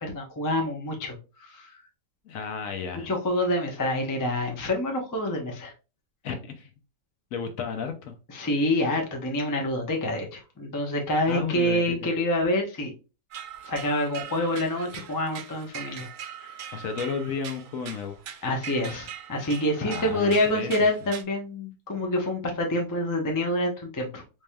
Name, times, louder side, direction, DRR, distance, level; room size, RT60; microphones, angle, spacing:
voice 1, 0.0-1.7 3.0-5.7 8.3-12.9 13.6-16.1 16.4-16.5 18.4-24.2, left 1 dB, 30° left, 0.4 m, -27 dB
voice 2, 2.3-3.1 6.2-6.7 7.3-8.1 11.3-12.1 16.7-18.2 19.8-20.7, left 6 dB, 65° left, 0.9 m, -33 dB
sound 1, 13.3-21.2, right 9 dB, 65° right, 0.8 m, -41 dB
4.1 x 3.3 x 2.2 m
omnidirectional pair, 1.7 m